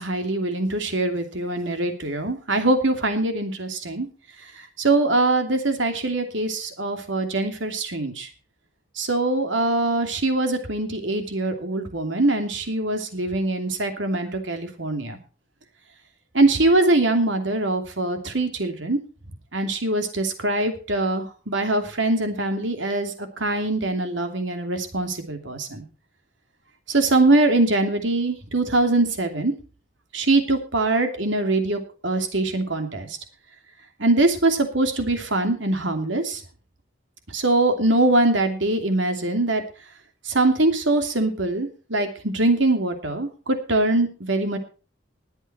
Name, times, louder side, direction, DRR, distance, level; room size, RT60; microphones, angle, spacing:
voice 1, 0.0-4.1 4.8-8.3 9.0-15.2 16.3-19.0 19.5-25.8 26.9-29.5 30.1-33.1 34.0-36.4 37.3-39.6 40.3-44.6, right 2 dB, 70° right, 6 dB, 2.9 m, -23 dB
20.5 x 8.1 x 4.4 m, 0.35 s
head